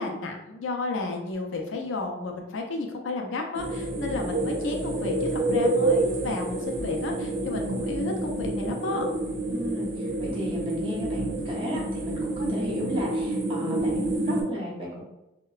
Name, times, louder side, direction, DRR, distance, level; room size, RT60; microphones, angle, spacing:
voice 1, 0.0-9.1, left 2 dB, 85° left, 2 dB, 0.4 m, -32 dB
sound 1, 3.5-14.4, right 2 dB, 70° right, 0.6 m, -28 dB
voice 2, 9.5-15.0, left 1 dB, 30° right, -4 dB, 0.7 m, -34 dB
2.8 x 2.1 x 2.4 m, 0.92 s
head